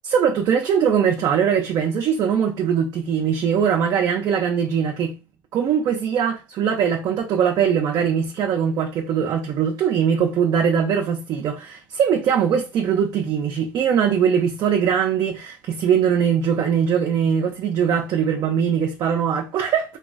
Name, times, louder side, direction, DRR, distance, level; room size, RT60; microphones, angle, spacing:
voice 1, 0.0-5.2 5.5-20.0, right 7 dB, 55° right, 0.5 m, -21 dB
2.9 x 2.3 x 2.5 m
supercardioid pair, 90°, 9 cm